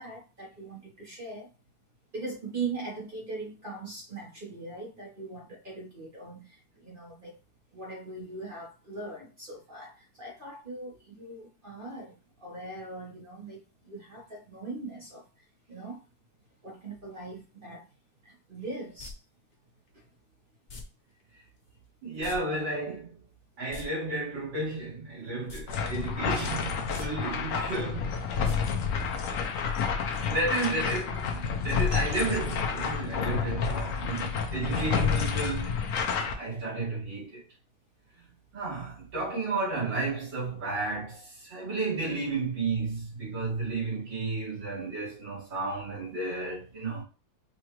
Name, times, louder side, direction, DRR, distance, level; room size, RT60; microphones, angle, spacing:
voice 1, 0.0-1.5 2.1-6.5 6.8-7.4 7.7-12.1 12.4-13.6 13.8-15.2 15.7-16.0 16.6-17.8 18.2-19.1, right 3 dB, 35° right, 1.0 m, -40 dB
sound 1, 19.0-19.1 20.7-20.8 22.2-22.4 22.6-22.7 23.6-23.8 25.5-25.6 26.0-26.1 26.8-27.1 28.4-28.5 28.9-29.0, left 4 dB, 85° left, 0.4 m, -42 dB
voice 2, 22.0-23.2 23.6-28.1 30.3-35.7 36.4-37.4 38.5-47.0, right 3 dB, 80° right, 2.9 m, -32 dB
sound 2, 25.7-36.3, left 6 dB, 60° left, 0.9 m, -29 dB
5.1 x 2.5 x 3.0 m
omnidirectional pair, 2.0 m